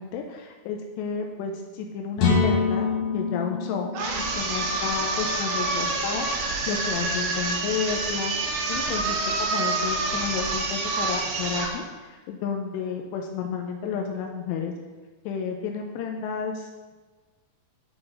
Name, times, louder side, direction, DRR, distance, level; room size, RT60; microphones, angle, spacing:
voice 1, 0.0-3.9 4.3-6.3 6.7-8.3 8.7-14.7 15.3-16.9, left 6 dB, 85° left, 2 dB, 2.7 m, -31 dB
sound 1, 2.2-6.0, left 5 dB, 70° left, 2.2 m, -26 dB
sound 2, 3.9-11.8, right 3 dB, 85° right, 3.1 m, -27 dB
10.0 x 3.9 x 3.9 m, 1.3 s
omnidirectional pair, 4.9 m